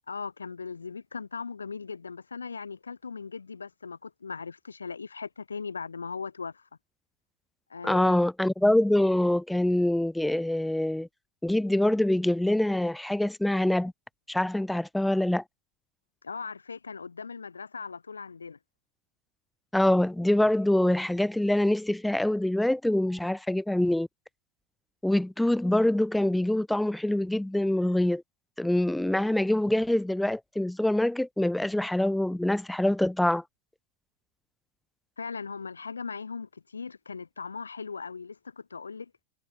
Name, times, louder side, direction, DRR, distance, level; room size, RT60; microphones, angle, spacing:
voice 1, 0.1-6.7 7.7-8.1 16.2-18.6 35.2-39.1, left 5 dB, 75° left, 1.2 m, -39 dB
voice 2, 7.8-11.1 11.4-13.9 14.3-15.4 19.7-24.1 25.0-28.2 28.6-33.4, left 1 dB, 5° left, 0.7 m, -25 dB
figure-of-eight pair, 90°, 0 cm